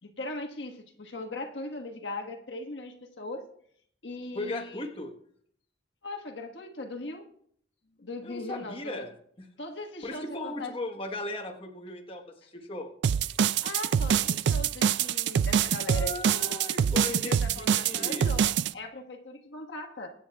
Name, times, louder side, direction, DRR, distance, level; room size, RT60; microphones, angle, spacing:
voice 1, 0.0-3.5 4.0-4.9 6.0-7.2 8.0-9.1 9.6-10.7 13.6-16.6 17.1-20.1, left 2 dB, 80° left, 3 dB, 1.5 m, -39 dB
voice 2, 4.3-5.1 8.2-9.1 9.4-9.5 10.0-12.9 15.9-18.3, left 2 dB, 30° left, 2 dB, 1.2 m, -37 dB
sound 1, 13.0-18.7, right 8 dB, 65° right, 0.4 m, -25 dB
23.5 x 9.2 x 2.4 m, 0.64 s
head